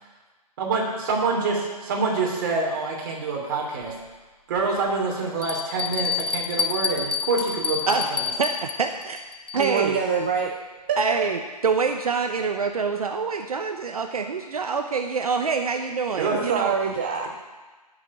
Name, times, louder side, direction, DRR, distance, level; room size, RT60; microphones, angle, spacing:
voice 1, 0.6-3.9 4.5-8.3 16.2-16.4, right 3 dB, 30° right, -1 dB, 2.7 m, -26 dB
Bell, 3.8-3.9 4.6-4.7 5.4-10.0, left 6 dB, 75° left, 1.0 m, -29 dB
voice 2, 8.4-9.2 9.5-10.0 11.0-16.7, right 5 dB, 60° right, 5 dB, 0.9 m, -26 dB
voice 3, 9.5-10.5 10.9-11.3 16.5-17.3, right 6 dB, 15° right, 2 dB, 0.4 m, -25 dB
15.0 x 6.7 x 4.9 m, 1.2 s
hypercardioid pair, 155°, 21 cm